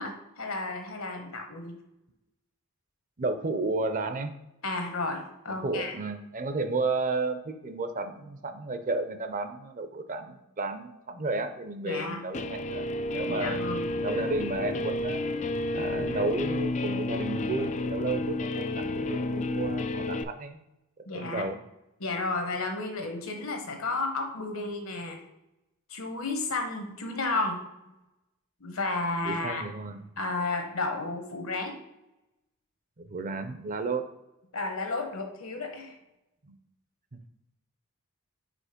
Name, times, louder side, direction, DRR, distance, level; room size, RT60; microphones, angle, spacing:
voice 1, 0.0-1.8 4.6-6.0 11.8-12.2 13.3-13.8 21.1-21.4 22.0-25.2 25.9-27.9 28.6-29.7 30.2-31.8 34.5-36.0, left 3 dB, 70° left, 4 dB, 1.1 m, -32 dB
voice 2, 3.2-4.3 5.5-12.9 13.1-13.6 14.0-15.2 15.7-20.6 21.1-21.6 29.3-30.0 33.0-34.0 36.5-36.6 37.1-37.2, right 3 dB, 40° right, 8 dB, 0.5 m, -32 dB
Guitar, 12.3-20.2, left 2 dB, 35° left, 0.3 m, -31 dB
5.0 x 4.2 x 5.1 m, 0.92 s
head